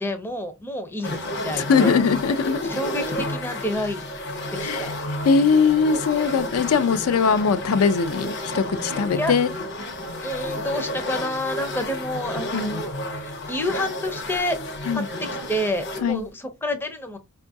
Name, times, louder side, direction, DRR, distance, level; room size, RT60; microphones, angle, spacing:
voice 1, 0.0-1.9 2.6-4.0 4.5-4.9 9.1-9.3 10.2-13.0 13.5-14.6 14.9-15.0 15.5-17.2, left 1 dB, 10° left, 0.4 m, -28 dB
sound 1, 1.0-16.2, left 1 dB, 50° left, 0.7 m, -31 dB
voice 2, 1.5-2.7 4.6-4.9 5.2-9.5 12.5-12.8 14.9-15.1 16.0-16.2, left 5 dB, 75° left, 0.4 m, -21 dB
4.5 x 2.4 x 2.6 m
head